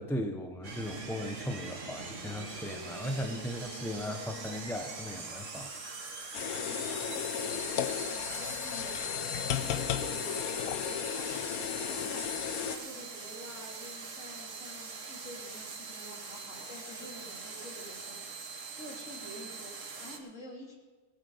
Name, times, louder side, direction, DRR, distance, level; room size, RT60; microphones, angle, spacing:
voice 1, 0.0-5.7 6.0-6.4, left 1 dB, ahead, 5 dB, 0.6 m, -37 dB
sound 1, 0.6-20.2, right 3 dB, 55° right, 1.8 m, -43 dB
sound 2, 6.3-12.8, left 9 dB, 70° left, 1.2 m, -34 dB
voice 2, 6.3-9.0 9.2-20.8, equal, 50° left, -2 dB, 3.4 m, -48 dB
19.0 x 8.6 x 5.6 m, 1.3 s
omnidirectional pair, 1.6 m